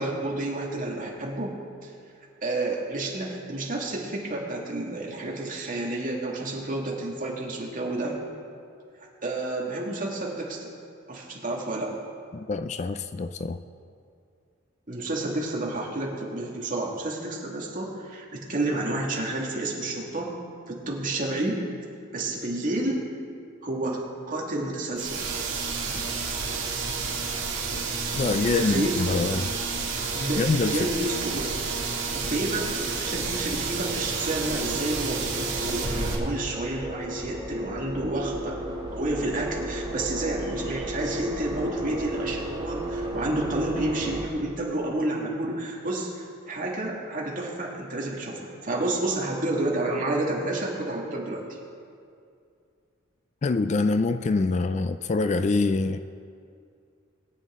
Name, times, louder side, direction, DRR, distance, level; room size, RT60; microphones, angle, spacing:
voice 1, 0.0-1.5 1.8-1.9 2.4-8.2 9.0-10.7 11.1-12.0 14.9-20.3 20.7-21.6 22.1-23.1 23.6-25.3 28.4-29.0 30.1-31.8 32.1-38.6 38.9-51.4, right 2 dB, 40° right, -2 dB, 2.0 m, -30 dB
voice 2, 12.3-13.6 28.1-29.6 30.4-30.9 53.4-56.0, left 3 dB, 35° left, 10 dB, 0.3 m, -25 dB
sound 1, 25.0-36.1, right 4 dB, 65° right, 2.0 m, -30 dB
sound 2, 31.0-44.3, right 1 dB, 20° right, 2.2 m, -35 dB
21.0 x 8.3 x 3.7 m, 2.4 s
head